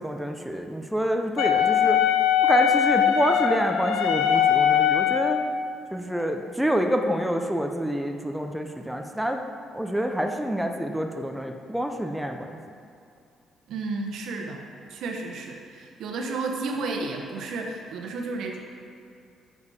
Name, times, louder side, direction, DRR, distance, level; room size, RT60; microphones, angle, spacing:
voice 1, 0.0-2.0 2.5-5.4 5.9-9.4 9.7-12.6, equal, 5° right, 4 dB, 0.6 m, -27 dB
Wind instrument woodwind instrument, 1.4-5.5, left 9 dB, 90° left, 0.6 m, -21 dB
voice 2, 13.7-14.6 14.9-18.6, right 3 dB, 75° right, 2 dB, 1.1 m, -32 dB
9.5 x 6.9 x 4.3 m, 2.5 s
cardioid pair, 105°, 0 cm